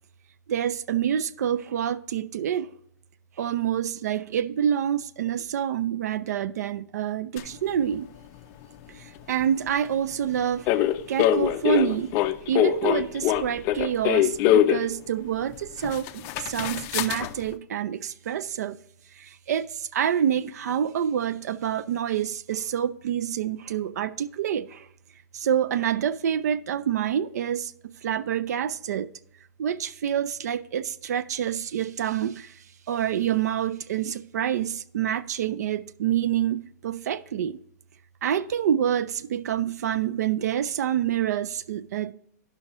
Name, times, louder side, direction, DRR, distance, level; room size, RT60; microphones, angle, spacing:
voice 1, 0.5-2.7 3.4-8.1 9.0-10.8 11.1-12.1 12.5-18.8 19.2-24.9 25.3-29.1 29.6-32.5 32.9-37.6 38.2-42.1, right 9 dB, 70° right, 0.4 m, -27 dB
sound 1, 7.4-7.5 10.7-14.9 15.5-15.6 15.8-17.3, left 12 dB, 30° left, 0.4 m, -23 dB
12.5 x 5.5 x 3.0 m
hypercardioid pair, 150°, 9 cm